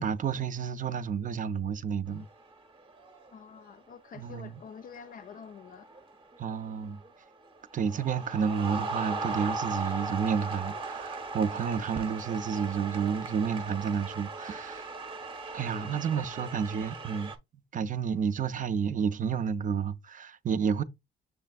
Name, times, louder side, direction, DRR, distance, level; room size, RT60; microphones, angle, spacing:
voice 1, 0.0-2.3 4.1-4.5 6.4-7.0 7.7-14.9 15.5-17.4 17.7-20.8, right 6 dB, 40° right, 0.4 m, -30 dB
sound 1, 2.1-2.6 2.9-3.4 4.3-4.5 4.9-7.1 7.5-17.4, right 3 dB, 25° right, 0.8 m, -38 dB
voice 2, 3.3-5.9 15.7-16.5, left 6 dB, 45° left, 0.4 m, -47 dB
6.6 x 3.3 x 2.3 m
cardioid pair, 90°, 20 cm